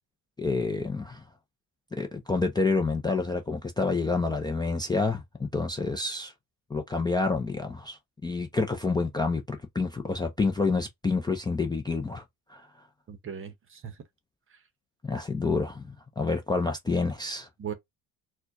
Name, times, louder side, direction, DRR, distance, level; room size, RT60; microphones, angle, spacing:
voice 1, 0.4-1.2 1.9-6.3 6.7-12.2 12.5-12.7 15.0-17.5, left 3 dB, 10° left, 0.5 m, -28 dB
voice 2, 13.1-14.0 14.5-14.6 17.6-17.7, right 8 dB, 30° right, 0.8 m, -38 dB
4.3 x 2.3 x 2.6 m
cardioid pair, 120°, 40 cm